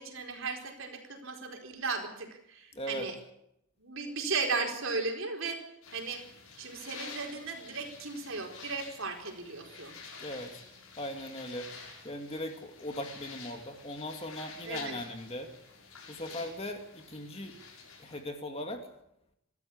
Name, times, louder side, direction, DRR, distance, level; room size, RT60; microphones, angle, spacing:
voice 1, 0.0-3.1 3.8-5.6 5.9-6.2 6.6-10.0 14.6-15.0, right 4 dB, 65° right, 3 dB, 4.5 m, -36 dB
voice 2, 2.7-3.1 10.2-10.5 11.0-11.7 12.0-15.5 16.1-17.6 18.0-18.9, left 1 dB, 25° left, 5 dB, 2.4 m, -39 dB
sound 1, 5.8-18.2, left 5 dB, 75° left, 7.5 m, -49 dB
25.5 x 13.5 x 8.7 m, 0.78 s
head